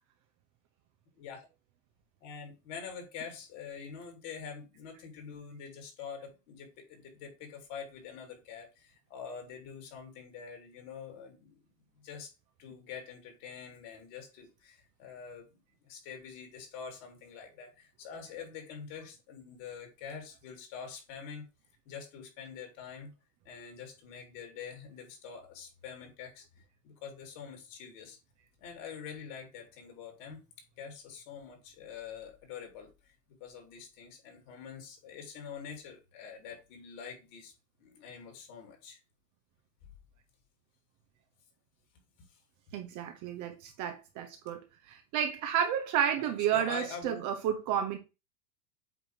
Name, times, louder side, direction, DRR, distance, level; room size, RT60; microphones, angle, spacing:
voice 1, 1.2-1.5 2.2-11.6 11.9-12.3 12.6-15.5 15.8-21.4 21.8-23.1 23.4-26.4 26.8-28.2 28.6-30.4 30.8-33.1 33.4-37.5 37.8-39.0 46.2-47.3, left 6 dB, 55° left, 2.9 m, -45 dB
voice 2, 42.7-44.6 44.9-48.0, right 9 dB, 40° right, 0.9 m, -31 dB
8.1 x 2.9 x 4.6 m
supercardioid pair, 125°, 48 cm